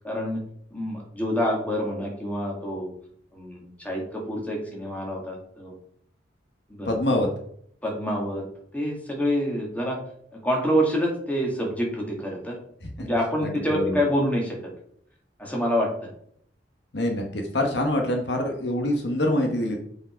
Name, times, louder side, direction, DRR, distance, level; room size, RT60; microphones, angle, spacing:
voice 1, 0.0-0.4 0.7-2.9 3.3-5.7 6.8-7.0 7.8-8.4 8.7-10.0 10.4-12.6 13.0-14.6 15.4-15.9, equal, 10° left, -1 dB, 2.1 m, -27 dB
voice 2, 6.8-7.3 12.8-13.1 13.4-14.0 16.9-19.8, left 1 dB, 65° left, 3 dB, 1.3 m, -25 dB
7.2 x 5.0 x 4.5 m, 0.65 s
head